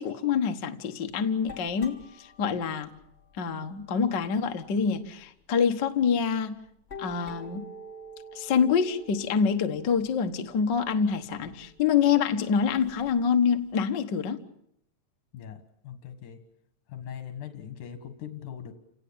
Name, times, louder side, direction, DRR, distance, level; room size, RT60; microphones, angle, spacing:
voice 1, 0.0-2.9 3.4-6.5 7.0-7.6 8.3-14.4, left 6 dB, 50° left, 6 dB, 1.5 m, -26 dB
sound 1, 1.1-5.1 5.5-5.7 6.0-13.9, left 1 dB, 20° left, 3.6 m, -48 dB
voice 2, 15.3-16.4 16.9-18.7, left 9 dB, 80° left, 7 dB, 3.2 m, -41 dB
29.5 x 18.5 x 8.7 m, 0.75 s
omnidirectional pair, 3.5 m